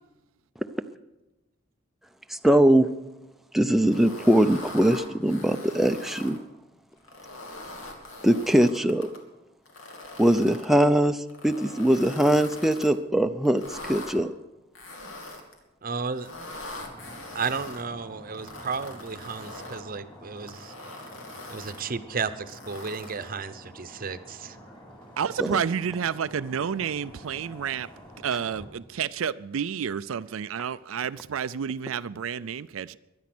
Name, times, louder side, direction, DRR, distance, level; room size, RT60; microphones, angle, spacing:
voice 1, 2.3-2.9 3.5-6.4 8.2-9.1 10.2-14.3 25.4-25.6, right 1 dB, ahead, 0.5 m, -21 dB
sound 1, 3.8-6.4 7.0-9.2 9.7-10.7 11.3-12.9 13.5-14.1 14.8-15.6 16.1-17.8 18.3-19.8 20.4-21.9 22.5-23.4, left 2 dB, 80° left, 2.8 m, -42 dB
voice 2, 15.8-16.3 17.3-20.7 21.5-24.6, right 5 dB, 45° right, 0.8 m, -33 dB
sound 2, 16.8-28.7, equal, 25° left, 4.5 m, -48 dB
voice 3, 25.2-27.9 28.2-33.0, right 7 dB, 90° right, 0.4 m, -30 dB
23.0 x 9.5 x 6.1 m
head